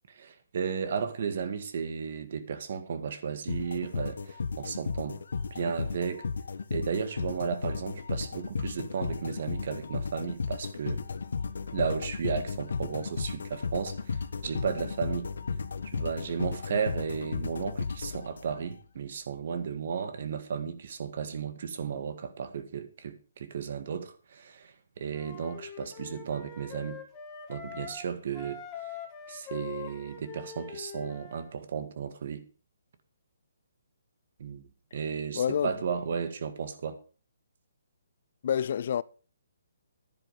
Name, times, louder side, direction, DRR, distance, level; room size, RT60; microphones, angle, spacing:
voice 1, 0.1-5.2 5.5-6.3 6.7-11.0 11.7-15.3 15.8-27.0 27.5-28.6 29.3-32.4 34.4-34.6 34.9-37.0, right 6 dB, 50° right, 2.0 m, -34 dB
sound 1, 3.5-18.7, left 5 dB, 75° left, 1.3 m, -34 dB
Wind instrument woodwind instrument, 25.1-28.0 28.3-31.5, left 6 dB, 15° left, 2.2 m, -43 dB
voice 2, 35.3-35.7 38.4-39.0, left 8 dB, 45° left, 0.5 m, -27 dB
11.0 x 10.0 x 5.0 m
hypercardioid pair, 165°, 0 cm